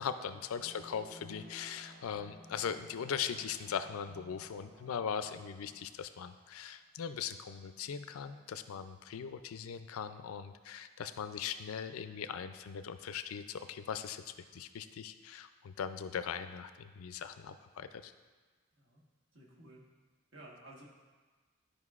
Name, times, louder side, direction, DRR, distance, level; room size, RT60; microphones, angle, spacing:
voice 1, 0.0-18.1, left 7 dB, 85° left, 11 dB, 0.4 m, -40 dB
sound 1, 0.5-6.7, right 1 dB, 50° right, 0.9 m, -56 dB
voice 2, 19.3-19.8 20.3-20.8, right 1 dB, 65° right, -3 dB, 1.3 m, -54 dB
11.5 x 5.1 x 2.4 m, 1.4 s
head